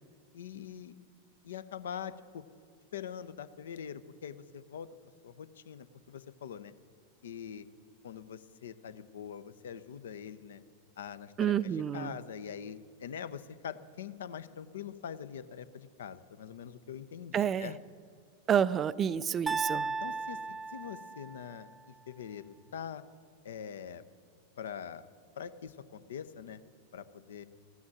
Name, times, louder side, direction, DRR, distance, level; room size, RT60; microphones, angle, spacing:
voice 1, 0.3-0.9 1.4-2.4 2.9-4.9 5.2-6.7 7.2-7.7 8.0-10.6 11.0-17.8 19.7-23.0 23.4-24.0 24.6-25.0 25.4-26.6 26.9-27.4, left 8 dB, 60° left, 15 dB, 0.6 m, -43 dB
voice 2, 11.4-12.2 17.3-17.7 18.5-19.9, right 9 dB, 25° right, 18 dB, 0.3 m, -29 dB
sound 1, 19.5-21.6, right 4 dB, 10° right, 0.8 m, -35 dB
14.5 x 9.5 x 9.9 m, 2.3 s
figure-of-eight pair, 90°, 0 cm